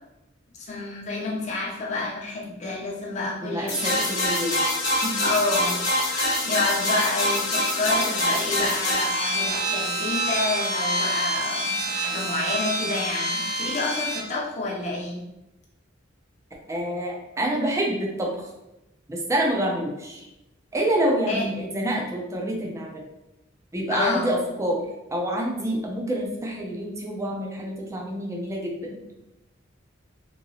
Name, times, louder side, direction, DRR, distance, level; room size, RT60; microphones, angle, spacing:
voice 1, 0.5-4.2 5.2-15.2 21.3-21.5 23.9-24.3, left 3 dB, 35° left, -4 dB, 0.6 m, -29 dB
voice 2, 3.4-4.6 5.0-5.2 16.7-18.5 19.1-20.3 20.7-23.0 23.7-24.8 25.1-29.0, right 1 dB, 15° right, -1 dB, 0.5 m, -27 dB
sound 1, 3.7-14.2, equal, 65° left, 1.0 m, -25 dB
3.0 x 2.8 x 2.7 m, 0.94 s
head